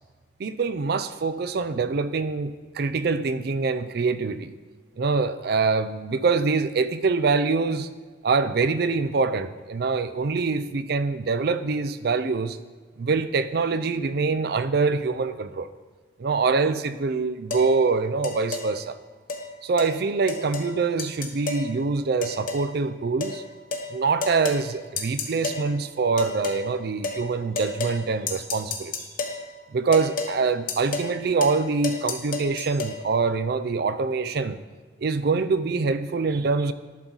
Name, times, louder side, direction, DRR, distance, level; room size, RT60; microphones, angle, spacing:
voice 1, 0.4-4.5 5.0-7.9 8.2-12.6 13.0-15.7 16.2-19.0 19.6-23.4 23.9-28.9 29.7-34.6 35.0-36.7, right 4 dB, 55° right, 0.4 m, -24 dB
sound 1, 17.5-17.7 18.2-18.7 19.3-19.4 19.8-19.9 20.3-20.7 21.0-21.7 22.2-22.7 23.2-23.4 23.7-23.9 24.2-24.6 25.0-25.6 26.2-26.6 27.0-27.2 27.6-28.0 28.3-29.4 29.9-30.3 30.7-31.1 31.4-31.6 31.8-32.9, left 3 dB, 45° left, 1.1 m, -30 dB
11.5 x 4.0 x 6.0 m
head